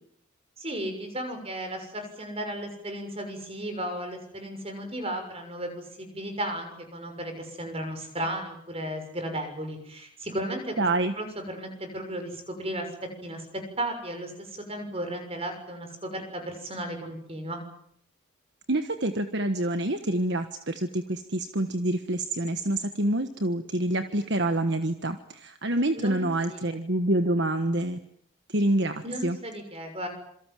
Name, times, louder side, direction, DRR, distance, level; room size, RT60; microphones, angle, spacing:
voice 1, 0.6-10.9 11.2-12.9 13.2-13.5 13.8-17.6 25.9-26.6 29.0-30.1, right 1 dB, 25° right, 6 dB, 6.5 m, -35 dB
voice 2, 10.8-11.1 18.7-28.0 28.5-29.4, right 1 dB, 50° right, 8 dB, 1.4 m, -27 dB
27.0 x 24.5 x 7.7 m, 0.69 s
head